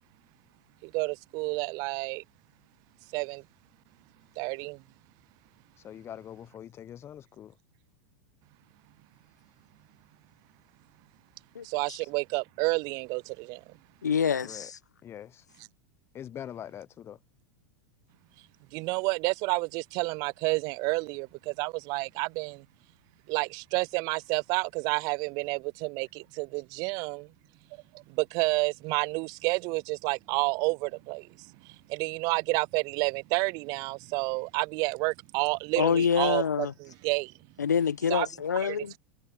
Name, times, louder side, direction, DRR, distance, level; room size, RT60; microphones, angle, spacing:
voice 1, 0.9-2.2 3.1-3.4 4.4-4.8 11.6-13.6 18.7-22.6 23.3-27.3 28.2-31.3 31.9-36.4 37.0-37.3 38.1-38.3, right 27 dB, 45° right, 0.6 m, -29 dB
voice 2, 5.8-7.6 12.0-12.1 14.4-14.7 15.0-15.5 16.1-17.2, left 10 dB, 30° left, 0.9 m, -43 dB
voice 3, 11.5-12.0 14.0-14.8 35.8-36.7 37.6-38.9, left 7 dB, 80° left, 1.2 m, -26 dB
figure-of-eight pair, 90°, 9 cm